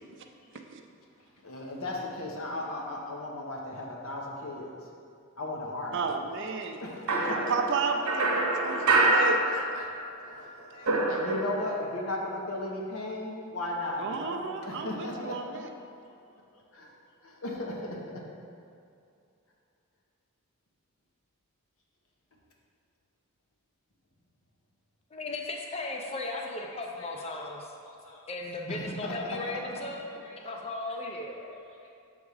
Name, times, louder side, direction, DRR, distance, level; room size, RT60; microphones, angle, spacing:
voice 1, 1.4-4.7 5.4-6.1 6.8-8.3 9.0-9.9 10.2-15.6 16.0-16.2 16.7-16.9 17.2-18.2 26.1-28.4 28.7-30.8 31.3-31.9, left 1 dB, 70° left, -2 dB, 1.0 m, -37 dB
voice 2, 5.9-6.8 7.3-9.3 14.0-15.7, right 5 dB, 55° right, 4 dB, 0.5 m, -32 dB
sound 1, 7.1-10.1 10.4-11.8, right 2 dB, 75° right, 0.8 m, -26 dB
voice 3, 25.1-27.7 28.3-30.1 30.4-31.6, left 2 dB, 25° left, 1 dB, 0.5 m, -36 dB
6.8 x 3.6 x 4.8 m, 2.5 s
head